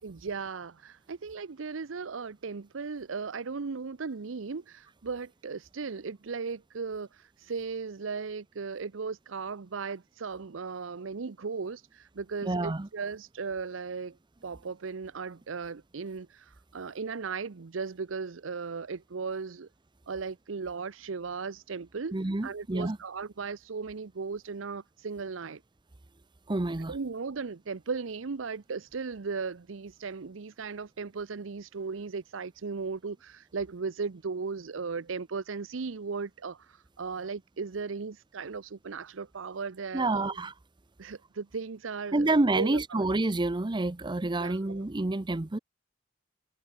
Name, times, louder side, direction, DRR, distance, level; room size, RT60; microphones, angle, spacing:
voice 1, 0.0-14.2 14.4-19.7 20.1-22.1 22.4-25.6 26.9-40.4 41.0-43.0 44.4-44.9, right 5 dB, 80° right, 0.7 m, -37 dB
voice 2, 12.4-12.9 22.1-23.0 26.5-26.9 39.9-40.5 42.1-45.6, right 2 dB, 25° right, 0.7 m, -28 dB
head